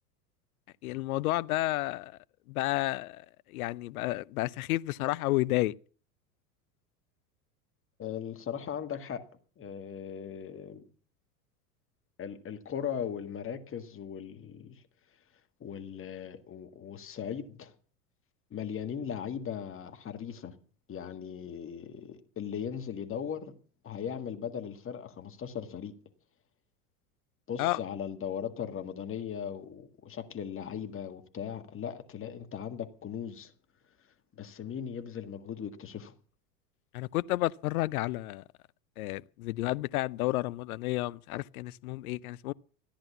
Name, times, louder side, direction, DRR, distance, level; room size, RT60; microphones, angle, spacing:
voice 1, 0.8-2.2 2.5-5.7 27.6-27.8 36.9-38.4 39.0-42.5, left 18 dB, 65° left, 0.7 m, -31 dB
voice 2, 8.0-9.3 9.6-10.8 12.2-14.8 15.6-17.7 18.5-20.5 20.9-23.5 23.8-25.9 27.5-33.5 34.4-36.1, left 8 dB, 25° left, 1.8 m, -38 dB
14.5 x 10.5 x 7.1 m
hypercardioid pair, 90°, 47 cm